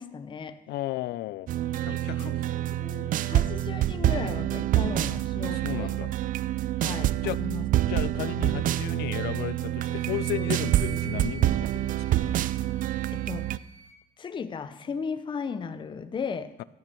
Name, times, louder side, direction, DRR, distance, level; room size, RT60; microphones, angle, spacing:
voice 1, 0.0-0.6 1.9-2.3 2.8-5.9 6.8-7.6 13.1-13.5 14.2-16.6, left 6 dB, 30° left, 11 dB, 0.6 m, -36 dB
voice 2, 0.7-1.5 1.9-2.4 5.4-6.1 7.2-7.4 7.7-12.0 16.6-16.7, left 16 dB, 75° left, 19 dB, 0.4 m, -34 dB
sound 1, 1.5-13.6, right 13 dB, 55° right, 0.4 m, -27 dB
Wind instrument woodwind instrument, 9.8-14.0, right 7 dB, 80° right, 3.0 m, -45 dB
13.0 x 8.8 x 4.5 m, 0.91 s
cardioid pair, 110°, 17 cm